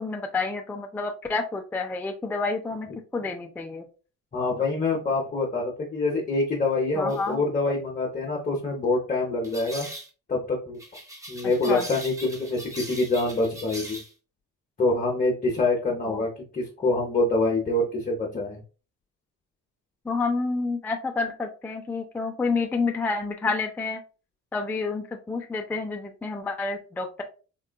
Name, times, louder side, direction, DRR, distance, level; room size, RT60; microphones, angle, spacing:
voice 1, 0.0-3.9 7.0-7.4 11.4-11.9 16.0-16.2 20.0-24.0 24.5-27.2, left 3 dB, 5° left, 4 dB, 0.3 m, -29 dB
voice 2, 4.3-9.9 10.3-10.8 11.3-14.0 14.8-18.6, left 2 dB, 25° left, -2 dB, 0.8 m, -25 dB
sound 1, 7.1-7.2 9.4-10.1 10.8-14.1, right 1 dB, 10° right, 0.8 m, -40 dB
3.8 x 2.3 x 2.2 m, 0.35 s
cardioid pair, 90°, 30 cm